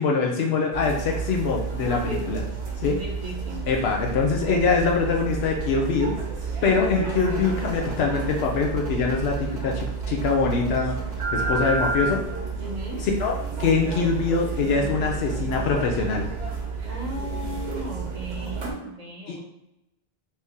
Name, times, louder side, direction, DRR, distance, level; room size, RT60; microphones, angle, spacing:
voice 1, 0.0-2.4 2.8-3.0 3.7-6.1 6.6-10.9 11.3-12.2 13.2-16.3 19.3-19.4, left 4 dB, 75° left, 0 dB, 0.8 m, -23 dB
sound 1, 0.7-18.7, right 5 dB, 70° right, 1.0 m, -30 dB
voice 2, 3.0-3.6 12.6-13.0 16.9-19.4, left 1 dB, 40° right, -2 dB, 0.8 m, -36 dB
3.3 x 2.7 x 3.5 m, 0.89 s
omnidirectional pair, 1.1 m